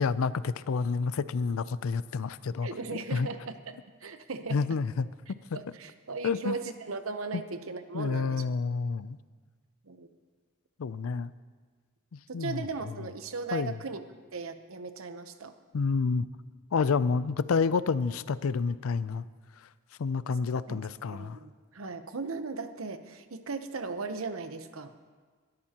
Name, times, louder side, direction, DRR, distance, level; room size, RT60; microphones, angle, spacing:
voice 1, 0.0-2.7 3.1-3.3 4.5-5.4 6.2-6.6 7.3-7.4 7.9-9.2 10.8-11.3 12.1-12.6 13.5-13.8 15.7-16.3 16.7-19.3 20.0-21.4, left 5 dB, 80° left, 16 dB, 0.4 m, -29 dB
voice 2, 2.6-4.6 5.5-8.4 9.8-10.1 12.3-14.0 14.3-15.5 20.5-20.8 21.1-24.9, right 4 dB, 80° right, 9 dB, 0.8 m, -37 dB
21.5 x 13.0 x 2.9 m, 1.5 s
head